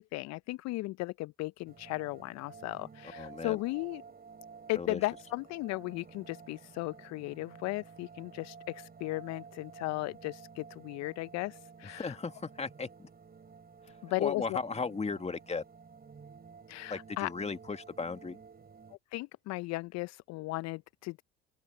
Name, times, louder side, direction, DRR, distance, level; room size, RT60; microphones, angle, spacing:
voice 1, 0.0-4.0 4.7-12.2 14.0-14.6 16.7-17.3 19.1-21.2, left 20 dB, 55° left, 0.7 m, -36 dB
sound 1, 1.6-19.0, right 5 dB, 30° right, 6.1 m, -52 dB
voice 2, 3.2-3.6 4.8-5.0 11.9-13.1 14.2-15.6 16.9-18.4, left 4 dB, 20° left, 2.2 m, -36 dB
open air
hypercardioid pair, 65°, 32 cm